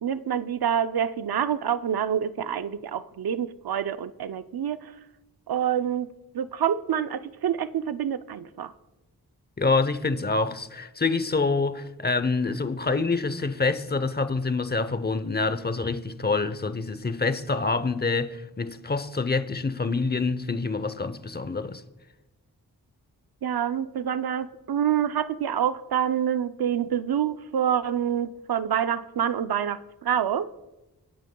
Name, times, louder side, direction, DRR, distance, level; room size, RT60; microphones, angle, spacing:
voice 1, 0.0-4.9 5.5-6.1 6.3-8.7 23.4-30.5, right 9 dB, 70° right, 0.6 m, -27 dB
voice 2, 9.6-21.8, left 3 dB, 25° left, 0.8 m, -26 dB
26.0 x 9.1 x 2.3 m
cardioid pair, 40°, 38 cm